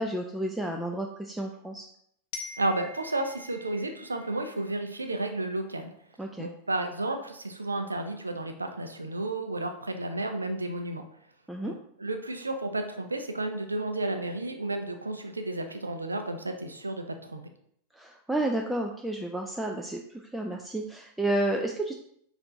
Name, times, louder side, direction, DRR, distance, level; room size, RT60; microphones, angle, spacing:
voice 1, 0.0-1.9 6.2-6.5 11.5-11.7 18.0-21.9, right 1 dB, 5° right, 1 dB, 0.4 m, -31 dB
Glockenspiel, 2.3-5.2, left 3 dB, 45° left, 0.6 m, -45 dB
voice 2, 2.6-5.9 6.4-11.0 11.6-17.4, right 2 dB, 80° right, 6 dB, 0.5 m, -32 dB
4.3 x 2.6 x 4.2 m, 0.69 s
figure-of-eight pair, 90°, 0 cm